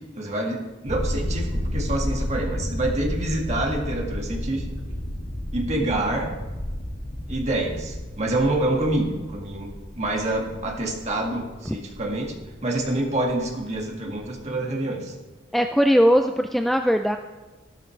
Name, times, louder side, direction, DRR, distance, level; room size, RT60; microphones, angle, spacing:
voice 1, 0.2-4.7 5.5-6.3 7.3-12.4 12.6-15.2, right 1 dB, 35° right, 0 dB, 1.9 m, -27 dB
sound 1, 0.9-14.5, equal, 50° left, 2.0 m, -32 dB
voice 2, 15.5-17.2, equal, ahead, 5 dB, 0.3 m, -19 dB
13.5 x 12.5 x 3.3 m, 1.2 s
head